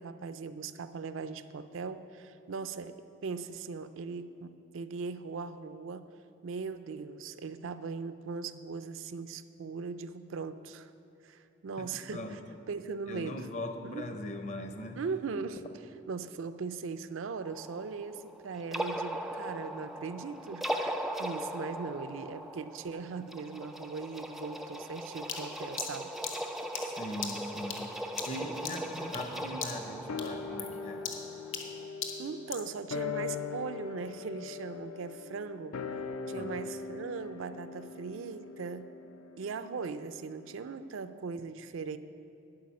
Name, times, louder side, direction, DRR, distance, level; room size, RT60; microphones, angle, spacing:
voice 1, 0.0-6.1 6.4-10.9 11.2-12.4 12.7-13.5 13.8-14.1 15.0-15.6 16.1-26.1 32.2-35.8 36.3-38.9 39.4-42.0, right 5 dB, 70° right, 11 dB, 0.4 m, -39 dB
voice 2, 11.8-12.6 13.1-15.0 26.8-28.0 28.3-31.0 36.3-36.5, left 1 dB, 35° left, 6 dB, 0.7 m, -40 dB
sound 1, 17.4-31.9, right 1 dB, ahead, 0.3 m, -39 dB
sound 2, 25.3-29.3 29.6-29.9 30.2-32.7, left 6 dB, 65° left, 1.0 m, -40 dB
sound 3, 30.1-40.7 41.0-41.1, left 5 dB, 85° left, 0.5 m, -41 dB
11.5 x 4.9 x 8.4 m, 2.7 s
head